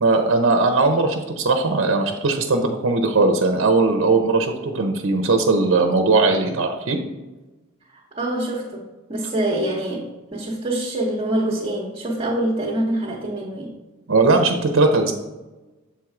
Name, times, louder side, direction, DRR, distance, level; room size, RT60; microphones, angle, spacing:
voice 1, 0.0-7.0 14.1-15.1, right 3 dB, 65° right, 5 dB, 0.7 m, -19 dB
voice 2, 7.9-13.8, right 1 dB, 30° right, -4 dB, 1.0 m, -25 dB
7.2 x 4.5 x 3.6 m, 1.1 s
head